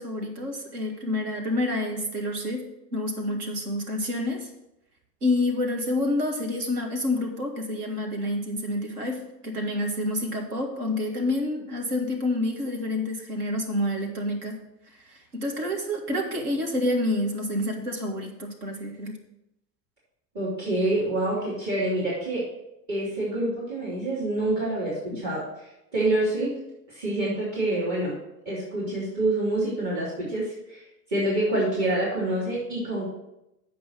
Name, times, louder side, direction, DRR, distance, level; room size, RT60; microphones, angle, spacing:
voice 1, 0.0-2.6 2.9-4.5 5.2-14.6 15.1-19.2, left 1 dB, 65° right, 2 dB, 1.9 m, -28 dB
voice 2, 20.3-22.4 22.9-25.4 25.9-26.5 26.9-28.1 28.4-30.8 31.1-33.0, right 1 dB, 35° right, -7 dB, 3.2 m, -26 dB
7.7 x 5.4 x 7.3 m, 0.88 s
figure-of-eight pair, 85°, 48 cm